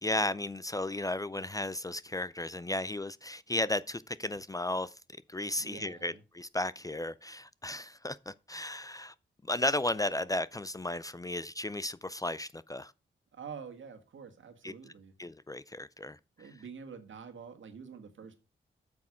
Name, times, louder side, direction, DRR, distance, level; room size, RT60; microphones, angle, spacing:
voice 1, 0.0-4.9 5.3-9.1 9.4-12.9 14.6-14.7 15.2-16.2, left 1 dB, 20° left, 0.4 m, -34 dB
voice 2, 5.6-6.2 13.3-15.1 16.4-18.4, right 6 dB, 75° right, 1.7 m, -47 dB
8.6 x 6.1 x 4.9 m
wide cardioid pair, 90°, 20 cm